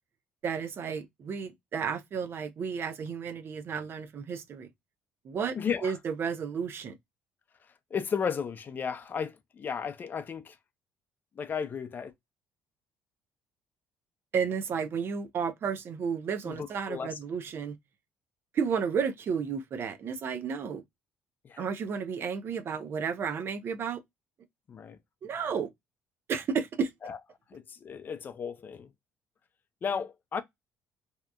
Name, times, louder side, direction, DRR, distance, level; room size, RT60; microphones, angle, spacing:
voice 1, 0.4-4.7 5.2-5.6 5.8-7.0 14.3-17.8 18.5-20.8 21.6-24.0 25.2-25.7 26.3-26.9, right 6 dB, 50° right, 0.6 m, -32 dB
voice 2, 5.6-5.9 7.9-10.6 11.4-12.1 16.4-17.2 21.4-21.7 24.7-25.0 27.0-27.2 27.5-28.9 29.8-30.4, left 6 dB, 40° left, 0.5 m, -34 dB
2.8 x 2.3 x 2.2 m
supercardioid pair, 80°, 5 cm